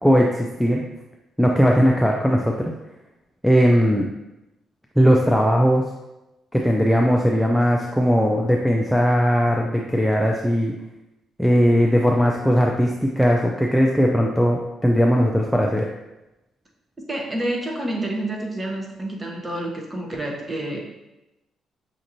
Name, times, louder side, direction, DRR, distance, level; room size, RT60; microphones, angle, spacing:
voice 1, 0.0-0.8 1.4-2.7 3.4-4.1 5.0-5.8 6.5-10.8 11.4-15.9, equal, ahead, 0 dB, 0.4 m, -18 dB
voice 2, 17.1-20.8, right 1 dB, 20° right, 0 dB, 1.0 m, -28 dB
6.1 x 2.9 x 2.6 m, 0.97 s
cardioid pair, 90°, 0 cm